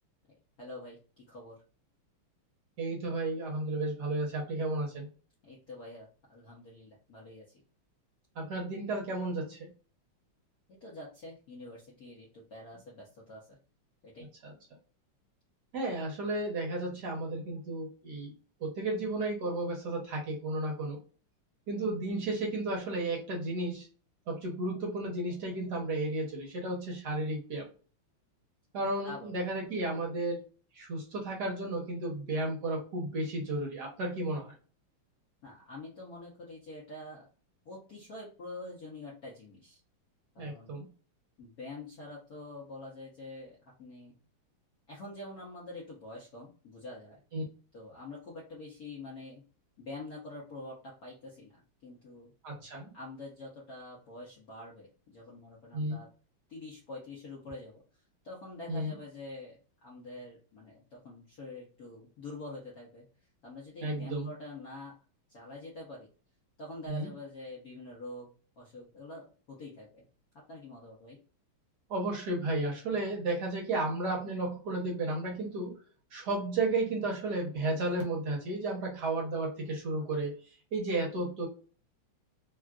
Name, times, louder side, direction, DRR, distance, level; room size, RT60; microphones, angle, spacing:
voice 1, 0.6-1.6 5.4-7.4 10.7-13.6 14.0-14.3 29.0-29.3 35.4-37.3 37.6-39.8 40.3-40.7 41.4-44.1 44.9-47.2 47.7-49.4 49.8-52.3 52.9-56.1 56.5-57.8 58.2-63.0 63.4-64.9 65.3-66.1 66.6-68.3 68.6-70.0 70.5-71.2, left 2 dB, 60° left, -4 dB, 1.0 m, -46 dB
voice 2, 2.8-5.1 8.4-9.7 14.4-14.5 15.7-18.3 18.6-21.0 21.7-23.9 24.3-27.7 28.7-30.4 30.7-34.5 40.4-40.9 47.3-47.4 52.4-52.9 55.7-56.0 58.7-58.9 63.8-64.3 66.9-67.1 71.9-75.7 76.1-80.4 80.7-81.5, right 2 dB, 60° right, -1 dB, 1.2 m, -33 dB
3.6 x 2.3 x 2.3 m, 0.38 s
omnidirectional pair, 2.4 m